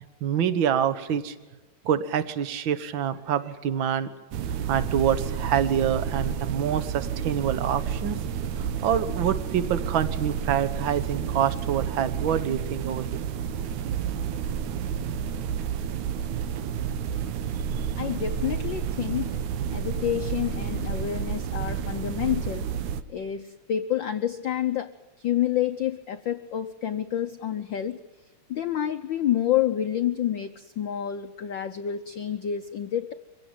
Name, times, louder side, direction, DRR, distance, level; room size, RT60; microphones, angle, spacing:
voice 1, 0.2-1.3 1.8-4.1 4.5-8.2 8.6-13.2, right 9 dB, 50° right, 12 dB, 1.8 m, -26 dB
sound 1, 4.3-23.0, right 8 dB, 85° right, 2.4 m, -30 dB
voice 2, 18.0-19.4 19.7-22.7 23.1-28.0 28.5-33.1, left 10 dB, 85° left, 8 dB, 1.0 m, -28 dB
24.5 x 17.0 x 9.1 m, 1.1 s
omnidirectional pair, 3.3 m